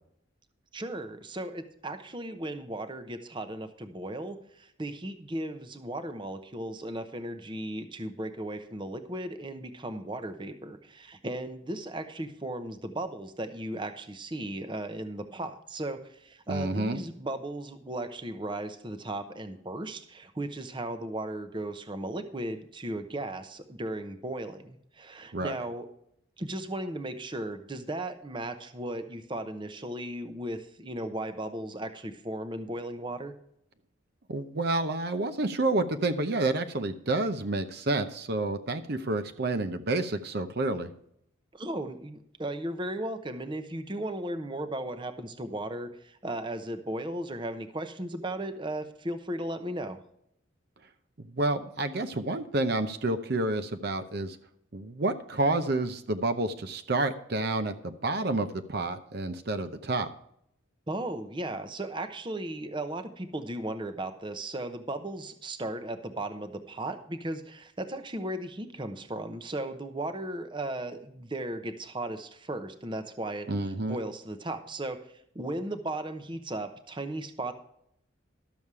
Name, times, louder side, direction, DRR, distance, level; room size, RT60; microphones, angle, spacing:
voice 1, 0.7-25.9 26.4-33.3 41.5-50.0 60.9-75.0 75.3-77.5, right 1 dB, 25° right, 9 dB, 0.8 m, -36 dB
voice 2, 16.5-17.0 25.3-25.6 34.3-40.9 51.3-54.4 54.7-60.1 73.5-74.0, right 2 dB, 55° right, 8 dB, 0.7 m, -29 dB
12.5 x 7.1 x 4.7 m, 0.72 s
head